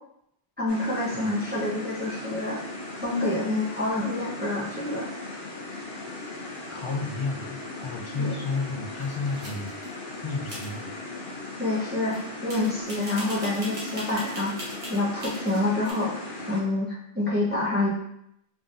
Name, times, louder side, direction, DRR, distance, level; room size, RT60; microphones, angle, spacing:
voice 1, 0.6-2.6 3.0-5.1 8.2-8.3 11.6-14.6 14.9-17.9, left 2 dB, 10° right, -7 dB, 0.8 m, -27 dB
sound 1, 0.7-16.6, left 2 dB, 75° left, 1.1 m, -38 dB
voice 2, 6.7-9.7 10.2-10.9, left 3 dB, 45° left, 0 dB, 0.4 m, -32 dB
sound 2, 9.0-9.9 10.5-10.7 12.1-12.2 12.5-15.9, equal, 85° right, 1.4 m, -40 dB
3.7 x 3.4 x 2.5 m, 0.76 s
omnidirectional pair, 1.0 m